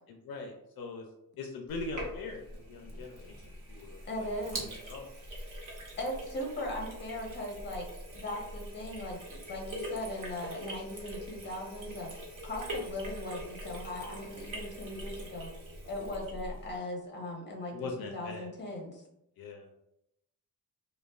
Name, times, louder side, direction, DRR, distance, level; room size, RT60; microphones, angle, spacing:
voice 1, 0.1-1.1 1.4-5.0 17.7-18.5 19.4-19.7, left 3 dB, 75° left, 3 dB, 0.5 m, -42 dB
Sink (filling or washing), 1.7-16.8, equal, 55° right, 1.0 m, -43 dB
voice 2, 4.0-4.6 6.0-7.9 8.1-12.1 12.4-15.5 15.9-19.0, left 1 dB, 30° left, 0 dB, 1.0 m, -39 dB
5.1 x 2.2 x 2.4 m, 0.84 s
wide cardioid pair, 145°, 36 cm